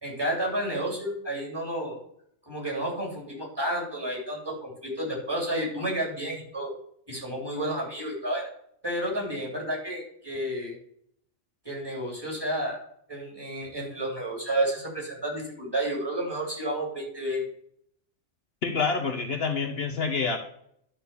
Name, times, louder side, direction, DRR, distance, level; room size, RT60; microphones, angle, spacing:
voice 1, 0.0-2.0 2.5-6.7 7.1-8.5 8.8-10.8 11.6-12.8 13.1-17.4, right 1 dB, 20° right, -2 dB, 3.1 m, -31 dB
voice 2, 18.6-20.4, left 4 dB, 60° left, 4 dB, 1.2 m, -27 dB
10.5 x 4.4 x 6.9 m, 0.68 s
omnidirectional pair, 1.2 m